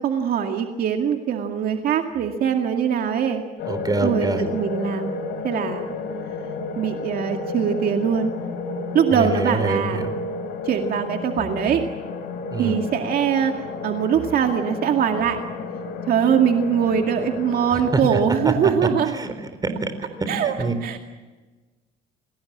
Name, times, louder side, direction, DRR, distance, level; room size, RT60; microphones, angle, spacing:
voice 1, 0.0-3.4 4.0-5.1 5.4-5.9 6.8-8.3 8.9-10.1 10.7-11.8 12.6-15.4 16.1-19.1 20.3-20.5 20.8-21.0, right 8 dB, 60° right, 4 dB, 2.2 m, -22 dB
sound 1, 3.6-17.9, left 4 dB, 70° left, 4.1 m, -32 dB
voice 2, 3.7-4.4 9.1-10.1 12.5-12.8 19.1-19.3 19.6-19.9 20.4-21.0, right 2 dB, 25° right, 10 dB, 4.0 m, -25 dB
28.5 x 19.5 x 7.5 m, 1.3 s
cardioid pair, 110°, 17 cm